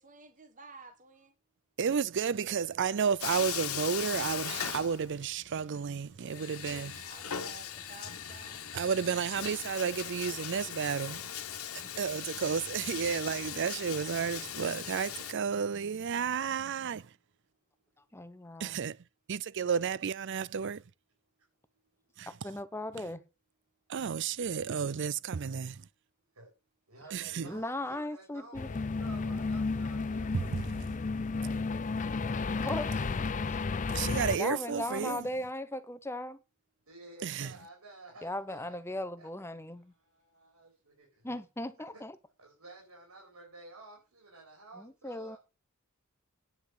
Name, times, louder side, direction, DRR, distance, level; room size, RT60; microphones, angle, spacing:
voice 1, 0.0-1.3 6.0-8.6 10.1-10.6 11.0-11.2, right 3 dB, 35° right, 1.6 m, -53 dB
voice 2, 1.8-6.9 8.7-11.2 12.0-17.0 18.6-18.9 19.3-20.8 23.9-25.7 27.1-27.4 30.3-30.4 33.9-35.2 37.2-37.5, right 6 dB, 55° right, 0.5 m, -32 dB
Bathtub (filling or washing), 3.2-5.5 5.7-5.8 6.3-15.3, left 9 dB, 85° left, 1.6 m, -39 dB
voice 3, 16.4-17.3 19.4-19.5 26.3-26.5 26.9-30.9 31.3-31.7 32.3-32.7 34.0-35.1 36.9-39.3 40.0-41.3 41.9-42.0 42.4-45.4, right 2 dB, 85° right, 4.9 m, -53 dB
voice 4, 18.1-18.8 22.4-23.2 27.4-28.7 32.6-32.9 33.5-33.6 34.4-36.4 38.2-39.9 41.2-42.1 44.8-45.4, left 1 dB, 10° left, 1.0 m, -37 dB
sound 1, 28.5-34.4, left 4 dB, 35° left, 0.5 m, -32 dB
9.7 x 5.9 x 8.4 m
head